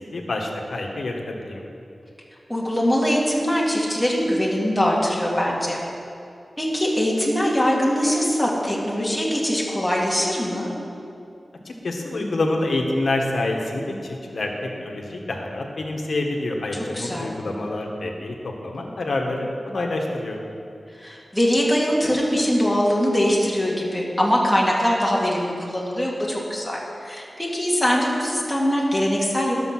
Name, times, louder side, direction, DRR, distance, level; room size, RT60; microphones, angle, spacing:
voice 1, 0.1-1.6 11.6-20.4, left 2 dB, 75° left, 1 dB, 1.4 m, -27 dB
voice 2, 2.5-5.8 6.6-10.7 16.9-17.3 20.9-29.5, equal, 5° left, -4 dB, 2.2 m, -22 dB
11.5 x 6.8 x 6.1 m, 2.6 s
wide cardioid pair, 95°, 0 cm